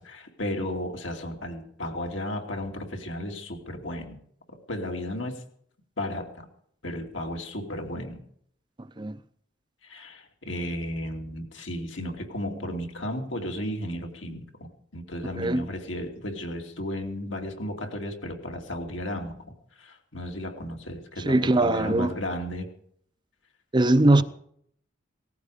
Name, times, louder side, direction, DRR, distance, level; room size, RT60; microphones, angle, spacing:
voice 1, 0.0-4.2 4.7-5.4 6.0-6.5 6.8-8.2 9.8-19.4 19.8-22.7, left 1 dB, 75° left, 2.8 m, -34 dB
voice 2, 21.2-22.1 23.7-24.2, right 2 dB, 25° right, 0.6 m, -21 dB
18.5 x 14.5 x 5.1 m
head